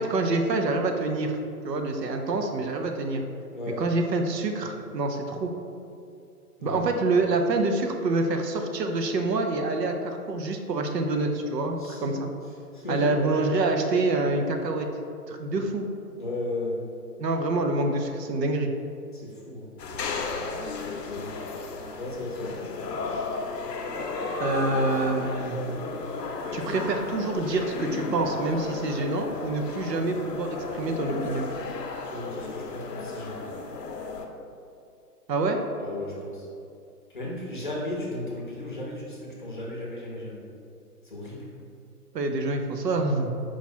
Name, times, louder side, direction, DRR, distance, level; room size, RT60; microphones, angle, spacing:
voice 1, 0.0-1.3 1.6-3.2 3.8-5.5 6.6-12.3 12.9-14.9 15.3-15.9 17.2-18.7 24.4-25.6 26.5-31.5 35.3-35.6 42.1-43.3, right 2 dB, 85° right, 4 dB, 0.7 m, -26 dB
voice 2, 6.6-6.9 11.8-12.1 12.5-13.3 16.2-16.8 19.1-19.7 21.0-21.4 22.0-22.6 32.1-33.5 35.8-36.5 37.1-40.4 41.0-41.5, left 1 dB, 35° left, -5 dB, 0.6 m, -35 dB
sound 1, 19.8-34.3, left 4 dB, 80° left, 0.7 m, -34 dB
4.7 x 2.5 x 4.2 m, 2.5 s
hypercardioid pair, 170°, 48 cm